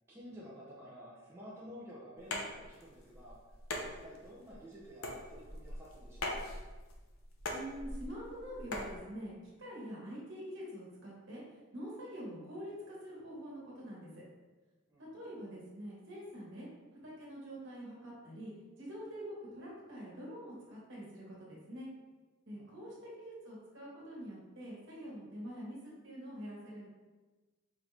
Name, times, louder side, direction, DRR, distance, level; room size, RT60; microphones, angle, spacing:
voice 1, 0.1-3.4 3.8-6.6 14.9-15.3 22.5-22.9, equal, 10° right, -7 dB, 0.5 m, -52 dB
sound 1, 2.2-9.0, left 2 dB, 70° left, 0.6 m, -42 dB
voice 2, 7.5-11.4 11.7-14.1 15.1-16.7 17.0-18.5 18.8-21.9 22.5-26.9, equal, 55° right, -5 dB, 1.4 m, -46 dB
4.8 x 2.6 x 3.1 m, 1.2 s
head